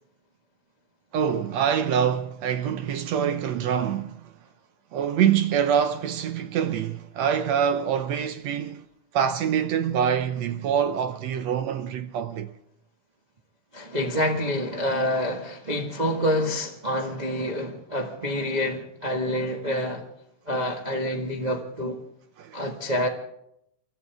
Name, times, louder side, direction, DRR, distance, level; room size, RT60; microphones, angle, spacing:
voice 1, 1.1-4.3 4.9-8.8 9.1-12.5 22.4-22.6, right 8 dB, 70° right, 1.8 m, -25 dB
voice 2, 13.7-20.0 20.5-22.0 22.5-23.1, left 1 dB, 25° right, 0.9 m, -27 dB
29.5 x 13.0 x 3.5 m
omnidirectional pair, 3.7 m